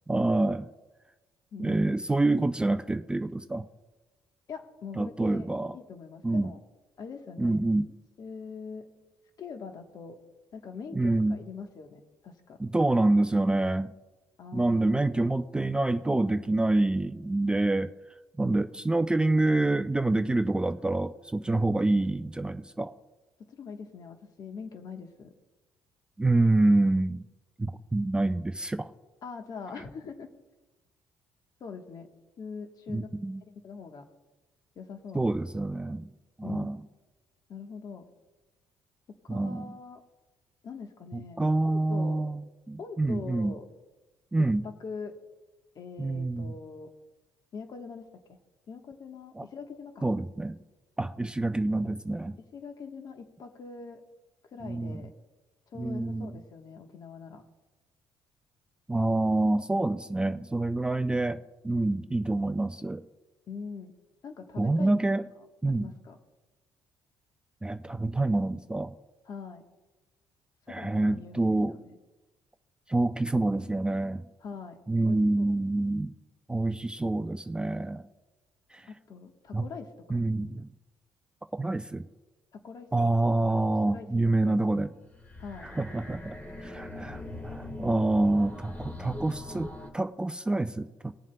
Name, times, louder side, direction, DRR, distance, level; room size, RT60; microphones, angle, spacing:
voice 1, 0.1-0.7 1.6-3.6 5.0-5.7 6.2-6.5 7.4-7.9 11.0-11.4 12.6-13.9 14.5-17.9 18.4-22.9 26.2-27.2 27.6-28.9 32.9-33.4 35.1-36.1 36.4-36.8 39.3-39.7 41.4-42.4 42.7-43.5 44.3-44.6 46.0-46.5 49.4-49.5 50.0-50.6 51.0-52.3 54.6-55.0 55.8-56.3 58.9-63.0 64.6-65.2 65.6-65.9 67.6-68.9 70.7-71.7 72.9-74.2 74.9-76.2 76.5-78.0 78.7-78.8 79.5-79.6 80.1-80.7 81.5-82.0 82.9-84.9 85.8-86.4 86.6-91.1, right 2 dB, 10° right, 10 dB, 0.4 m, -27 dB
voice 2, 1.5-2.1 4.5-5.5 5.7-6.6 7.0-7.6 8.2-8.9 9.4-10.2 10.5-12.6 14.4-15.2 23.4-25.3 29.2-30.3 31.6-32.1 32.4-33.1 33.4-34.1 34.7-35.3 36.4-36.7 37.5-38.0 39.1-40.0 40.6-42.2 42.8-43.7 44.4-45.1 45.7-46.9 47.5-48.4 48.7-50.1 52.4-54.0 54.5-55.1 55.7-57.4 63.5-63.9 64.2-65.0 65.7-66.2 69.2-69.6 70.7-72.0 74.4-74.8 75.0-75.6 78.9-80.2 82.5-83.1 83.7-84.1 84.4-84.6 85.4-85.7 88.3-88.4 88.8-88.9, left 5 dB, 55° left, 5 dB, 1.2 m, -43 dB
sound 1, 85.0-89.9, left 1 dB, 20° left, 1.7 m, -41 dB
20.0 x 7.3 x 2.2 m, 1.1 s
cardioid pair, 100°, 8 cm